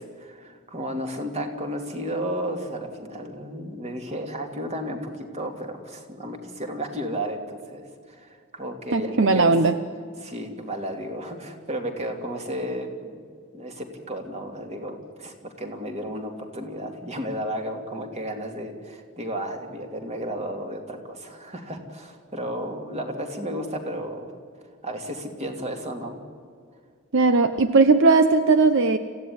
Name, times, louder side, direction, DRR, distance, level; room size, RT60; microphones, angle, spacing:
voice 1, 0.0-9.5 10.2-13.2 13.5-24.3 24.8-26.2, equal, 30° right, 4 dB, 2.8 m, -33 dB
voice 2, 8.9-9.7 27.1-29.0, right 3 dB, 60° right, 10 dB, 0.8 m, -18 dB
26.5 x 15.5 x 9.6 m, 2.2 s
head